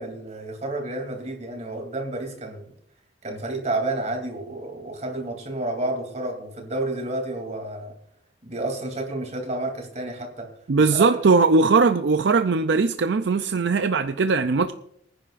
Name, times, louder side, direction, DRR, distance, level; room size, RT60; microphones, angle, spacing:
voice 1, 0.0-2.7 3.2-7.9 8.4-10.5 10.8-11.2, right 2 dB, 40° right, 3.0 m, -30 dB
voice 2, 10.7-14.7, right 4 dB, 65° right, 0.5 m, -19 dB
24.0 x 10.5 x 2.6 m
head